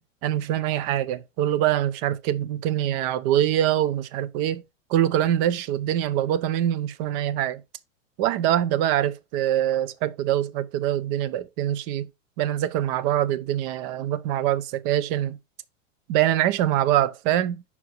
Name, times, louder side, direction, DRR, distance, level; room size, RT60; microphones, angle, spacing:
voice 1, 0.0-4.6 4.9-7.6 8.2-12.1 12.4-15.4 16.1-17.6, right 12 dB, 45° right, 0.8 m, -24 dB
5.5 x 4.7 x 4.5 m
hypercardioid pair, 105°, 39 cm